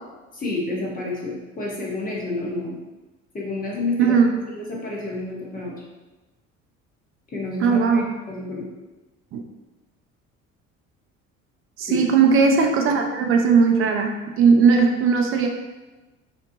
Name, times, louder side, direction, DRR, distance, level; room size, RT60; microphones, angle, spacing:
voice 1, 0.3-2.8 3.3-4.2 4.5-5.7 7.3-8.0 8.3-8.7 11.9-12.1, left 2 dB, 20° left, -3 dB, 0.8 m, -29 dB
voice 2, 4.0-4.3 7.6-8.1 9.3-9.4 11.8-15.5, right 5 dB, 35° right, 3 dB, 0.4 m, -18 dB
2.8 x 2.2 x 2.6 m, 1.2 s
hypercardioid pair, 60°, 39 cm